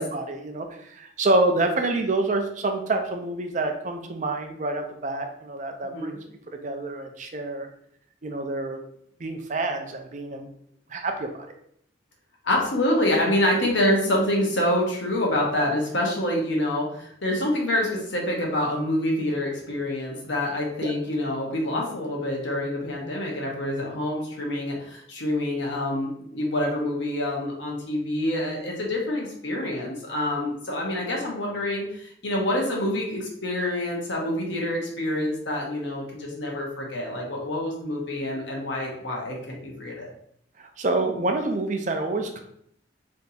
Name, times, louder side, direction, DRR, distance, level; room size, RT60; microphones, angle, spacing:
voice 1, 0.0-6.2 6.6-7.7 8.2-8.8 9.2-10.5 10.9-11.5 20.8-20.9 40.6-42.4, right 2 dB, 40° right, 4 dB, 0.5 m, -27 dB
voice 2, 5.8-6.2 12.4-40.1, left 1 dB, 85° left, -1 dB, 1.2 m, -26 dB
3.4 x 2.8 x 4.1 m, 0.68 s
head